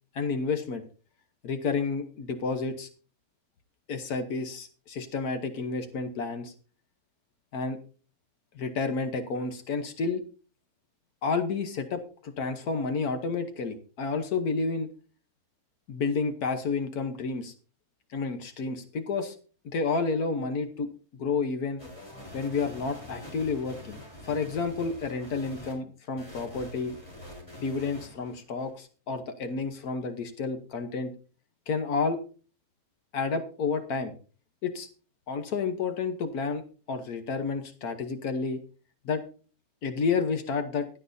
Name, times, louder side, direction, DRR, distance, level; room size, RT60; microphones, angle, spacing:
voice 1, 0.1-0.8 1.4-2.9 3.9-6.5 7.5-7.8 8.5-10.2 11.2-14.9 15.9-17.5 18.1-19.3 19.6-21.8 22.3-26.9 27.6-31.1 31.7-32.2 33.1-34.1 34.6-34.9 35.3-36.6 36.9-38.6 39.0-39.2 39.8-40.9, left 4 dB, 85° left, 8 dB, 1.6 m, -30 dB
sound 1, 21.8-25.7 26.2-28.7, left 1 dB, 20° left, 4.1 m, -45 dB
16.0 x 12.0 x 2.7 m, 0.38 s
omnidirectional pair, 1.5 m